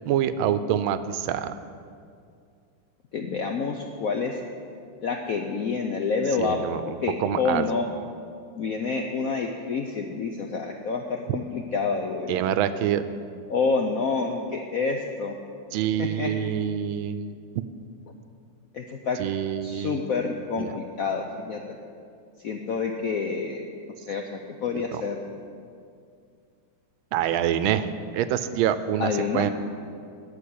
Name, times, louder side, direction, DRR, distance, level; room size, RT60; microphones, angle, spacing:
voice 1, 0.0-1.5 6.4-7.7 11.3-11.4 12.3-13.0 15.7-17.4 19.2-20.0 20.6-20.7 24.9-25.0 27.1-29.5, right 10 dB, 80° right, 12 dB, 1.4 m, -26 dB
voice 2, 3.1-4.4 5.0-6.6 7.0-7.9 8.6-12.4 13.5-15.4 16.0-16.3 18.7-19.2 19.6-21.6 22.4-23.6 24.0-25.2 29.0-29.5, left 4 dB, 75° left, 3 dB, 0.8 m, -28 dB
10.0 x 7.3 x 8.5 m, 2.3 s
omnidirectional pair, 2.3 m